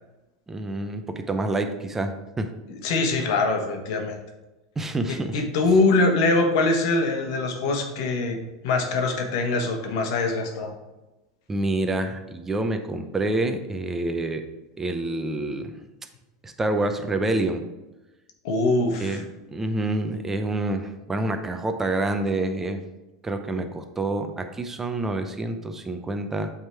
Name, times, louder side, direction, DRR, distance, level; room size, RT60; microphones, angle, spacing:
voice 1, 0.5-2.8 4.8-5.4 11.5-14.4 14.8-15.8 16.4-17.7 19.0-22.8 23.2-26.5, right 2 dB, 15° right, 7 dB, 0.7 m, -27 dB
voice 2, 2.8-4.2 5.3-8.4 8.6-10.7 18.4-19.2, left 3 dB, 70° left, 3 dB, 1.1 m, -23 dB
7.8 x 3.6 x 4.5 m, 1.0 s
supercardioid pair, 120°, 2 cm